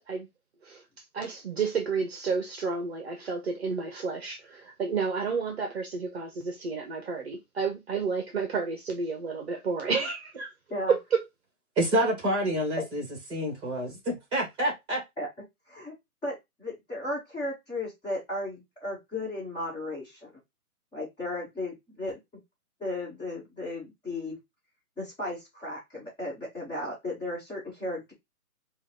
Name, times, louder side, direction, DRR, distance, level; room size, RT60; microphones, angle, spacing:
voice 1, 1.1-10.5 10.9-11.2, right 5 dB, 45° right, 1.1 m, -30 dB
voice 2, 11.8-13.0 13.3-15.0, right 1 dB, 10° right, 2.1 m, -27 dB
voice 3, 15.7-20.3 20.9-22.2 22.8-24.4 25.0-28.1, left 1 dB, 10° left, 2.2 m, -35 dB
4.9 x 2.7 x 3.9 m
hypercardioid pair, 150°, 45 cm